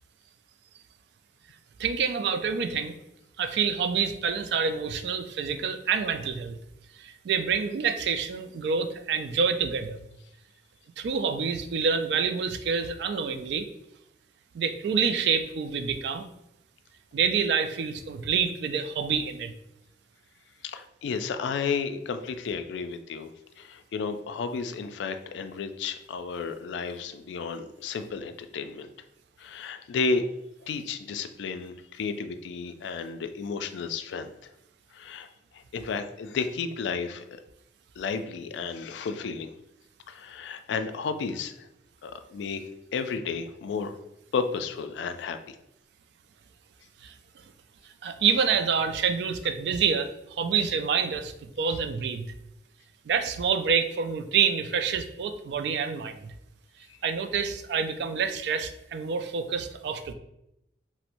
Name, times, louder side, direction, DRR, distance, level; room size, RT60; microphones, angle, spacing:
voice 1, 1.8-2.9 3.4-6.6 7.0-10.1 11.0-13.7 14.5-16.3 17.1-19.5 47.0-47.1 48.0-52.3 53.1-56.3 57.0-60.1, right 6 dB, 70° right, 8 dB, 0.3 m, -27 dB
voice 2, 20.6-23.3 23.6-28.9 29.4-30.2 30.6-34.5 34.9-35.3 35.5-37.3 38.0-39.5 40.1-41.7 42.0-42.6 42.9-44.0 44.3-45.6 56.9-57.0, left 5 dB, 90° left, 8 dB, 0.3 m, -32 dB
4.2 x 2.0 x 2.5 m, 0.83 s
head